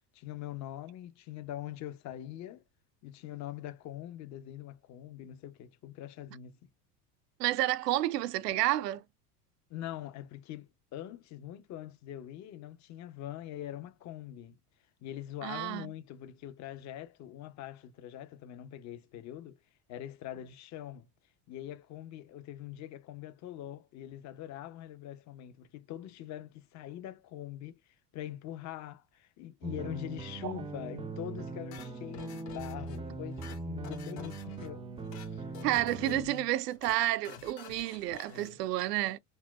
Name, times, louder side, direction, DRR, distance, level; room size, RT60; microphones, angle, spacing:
voice 1, 0.1-2.6 3.0-6.7 9.7-14.6 15.0-19.6 19.9-21.1 21.5-27.8 28.1-34.9 35.3-35.5 36.0-36.5 37.3-37.4 38.3-38.6, left 12 dB, 35° left, 0.6 m, -43 dB
voice 2, 7.4-9.0 15.4-15.9 30.4-30.5 35.6-39.2, right 15 dB, 85° right, 0.6 m, -30 dB
sound 1, 29.6-36.2, right 3 dB, 15° right, 0.4 m, -40 dB
sound 2, 31.7-33.0 33.3-34.7 35.0-35.3 35.5-36.4 36.7-37.0 37.2-38.5, left 9 dB, 60° left, 1.3 m, -50 dB
4.2 x 2.0 x 2.3 m
hypercardioid pair, 90°, 47 cm